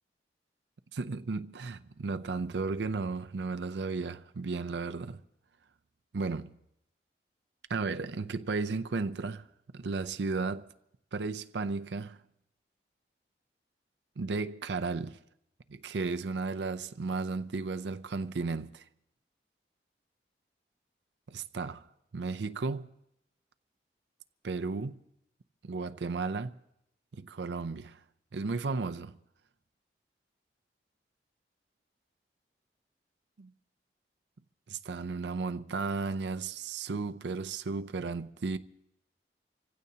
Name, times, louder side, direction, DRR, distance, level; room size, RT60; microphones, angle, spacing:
voice 1, 0.9-5.2 6.1-6.5 7.7-9.5 9.7-10.7 11.1-12.2 14.2-15.2 15.7-18.8 21.3-21.9 22.1-22.9 24.4-25.0 25.6-26.6 27.1-28.0 28.3-29.1 33.4-33.5 34.7-38.6, right 4 dB, 85° right, 0.5 m, -34 dB
26.5 x 16.0 x 2.8 m
head